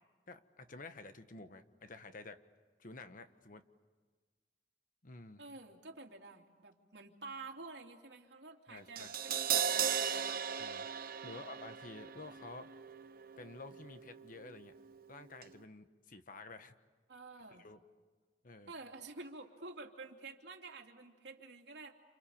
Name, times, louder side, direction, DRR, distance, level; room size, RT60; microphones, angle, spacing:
voice 1, 0.3-2.4 2.8-3.6 5.0-5.4 8.7-9.1 10.6-10.9 11.2-12.7 13.4-14.7 15.1-16.7 17.6-17.8 18.4-18.7, left 3 dB, 50° left, 9 dB, 1.3 m, -51 dB
voice 2, 5.4-10.4 11.2-11.4 17.1-17.6 18.7-21.9, right 3 dB, 75° right, 2 dB, 2.9 m, -50 dB
Crash cymbal, 9.0-15.1 15.4-15.5, right 8 dB, 55° right, 1.0 m, -38 dB
28.5 x 28.0 x 7.2 m, 1.4 s
head